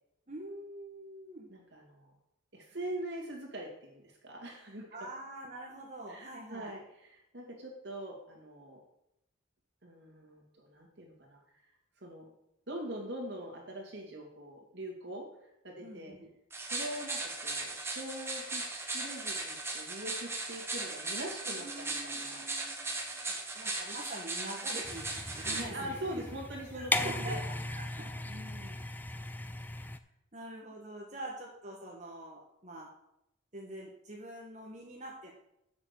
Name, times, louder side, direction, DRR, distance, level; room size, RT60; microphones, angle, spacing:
voice 1, 0.3-1.5 4.9-6.8 15.8-16.3 21.5-26.2 26.7-28.2 29.6-29.8 30.3-32.9 33.5-35.3, right 1 dB, 35° right, -2 dB, 1.4 m, -45 dB
voice 2, 1.5-2.2 2.5-5.1 6.1-8.8 9.8-11.6 12.0-12.2 12.7-16.1 16.7-22.5 25.4-27.4 28.3-28.8, right 1 dB, 55° right, 0 dB, 2.6 m, -43 dB
sound 1, 16.5-25.6, right 3 dB, 10° right, 1.1 m, -37 dB
sound 2, 24.8-30.0, left 2 dB, 10° left, 0.3 m, -37 dB
7.3 x 6.3 x 7.0 m, 0.82 s
head